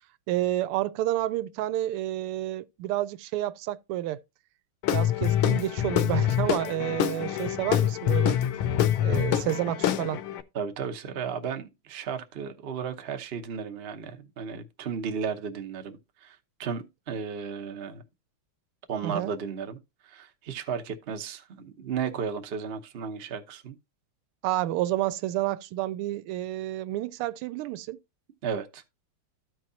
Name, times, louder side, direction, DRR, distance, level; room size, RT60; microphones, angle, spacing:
voice 1, 0.3-4.2 4.9-8.4 9.0-10.2 19.0-19.3 24.4-28.0, right 14 dB, 85° right, 1.5 m, -30 dB
Guitar / Drum, 4.8-10.4, left 11 dB, 75° left, 1.5 m, -25 dB
voice 2, 10.5-18.0 18.9-19.8 20.0-23.7 28.4-28.8, right 6 dB, 55° right, 0.6 m, -34 dB
13.5 x 4.6 x 2.7 m
omnidirectional pair, 2.4 m